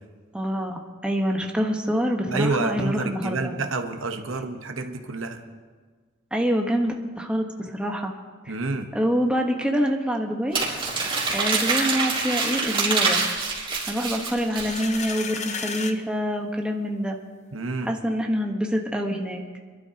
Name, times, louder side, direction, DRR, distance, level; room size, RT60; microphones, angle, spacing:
voice 1, 0.3-3.5 6.3-8.1 8.9-10.6 11.3-13.2 13.8-17.2 17.8-19.4, equal, 5° right, 1 dB, 1.1 m, -26 dB
voice 2, 2.3-5.4 8.5-8.9 17.5-17.9, right 3 dB, 75° right, 6 dB, 1.1 m, -28 dB
Crumpling crinkling, 10.5-15.1, right 4 dB, 25° right, 3.6 m, -25 dB
sound 1, 14.4-16.0, left 5 dB, 35° left, 0.8 m, -33 dB
27.0 x 12.0 x 2.9 m, 1.5 s
head